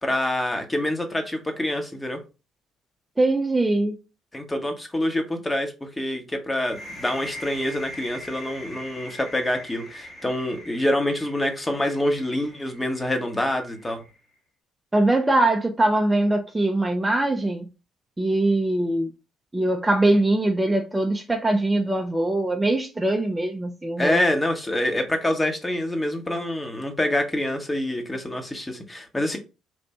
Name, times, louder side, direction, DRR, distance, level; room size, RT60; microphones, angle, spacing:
voice 1, 0.0-2.2 4.3-14.0 24.0-29.4, left 1 dB, 15° left, 1.2 m, -26 dB
voice 2, 3.2-4.0 14.9-17.7 18.2-19.1 19.5-24.2, right 2 dB, 15° right, 0.7 m, -22 dB
sound 1, 6.6-14.2, left 1 dB, 40° left, 1.5 m, -42 dB
3.5 x 2.5 x 4.1 m
hypercardioid pair, 50°, 0 cm